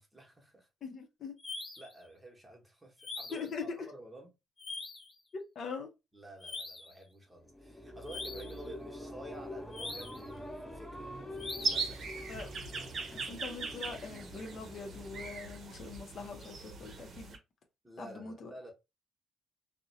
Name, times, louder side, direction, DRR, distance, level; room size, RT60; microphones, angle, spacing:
voice 1, 0.0-0.7 1.8-4.3 6.1-12.2 17.8-18.7, right 1 dB, 15° right, 1.0 m, -51 dB
voice 2, 0.8-1.3 3.3-3.8 5.5-5.9 12.3-12.5 13.1-17.4 18.0-18.5, left 5 dB, 60° left, 0.6 m, -42 dB
sound 1, 1.4-1.9 3.0-3.6 4.6-5.1 6.4-7.0 8.1-8.6 9.7-10.3 11.4-11.9, left 3 dB, 30° left, 0.9 m, -43 dB
sound 2, 7.3-16.0, left 1 dB, 10° left, 1.1 m, -46 dB
sound 3, 11.6-17.4, right 4 dB, 60° right, 0.6 m, -39 dB
2.6 x 2.1 x 2.6 m
cardioid pair, 90°, 0 cm